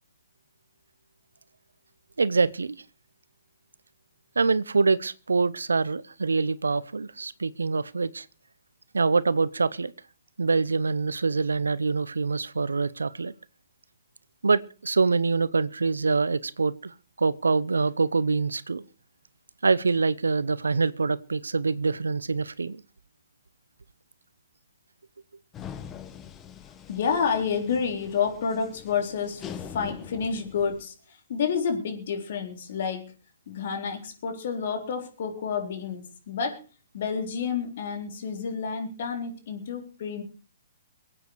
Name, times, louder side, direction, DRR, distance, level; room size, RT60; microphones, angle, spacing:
voice 1, 2.2-2.8 4.4-8.3 8.9-9.9 10.4-13.3 14.4-18.8 19.6-22.8, right 4 dB, 85° right, 18 dB, 0.8 m, -25 dB
sound 1, 25.5-30.8, left 8 dB, 20° left, 1.2 m, -43 dB
voice 2, 26.9-33.1 33.5-36.6 36.9-40.2, left 6 dB, 55° left, 4 dB, 4.0 m, -29 dB
23.0 x 9.0 x 4.7 m, 0.34 s
hypercardioid pair, 130°, 0 cm